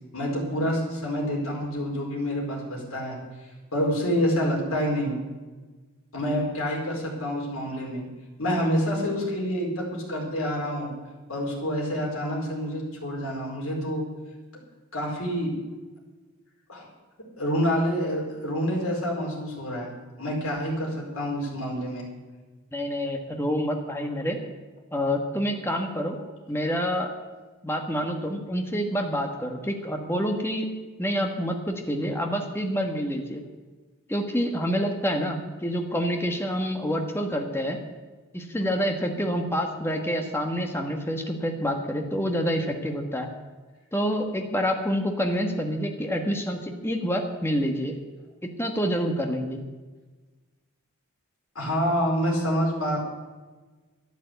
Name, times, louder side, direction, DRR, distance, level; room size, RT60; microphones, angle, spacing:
voice 1, 0.1-3.2 3.7-5.2 6.1-8.1 8.4-10.9 11.3-14.0 14.9-15.6 16.7-16.9 17.4-19.9 20.2-22.1 26.2-26.3 51.5-53.0, equal, 65° left, -2 dB, 4.8 m, -27 dB
voice 2, 22.7-24.4 24.9-26.2 26.5-27.1 27.6-30.7 31.0-33.4 34.1-37.8 38.3-43.3 43.9-47.9 48.4-49.6, equal, 10° left, 3 dB, 1.4 m, -27 dB
12.5 x 10.5 x 8.2 m, 1.3 s
head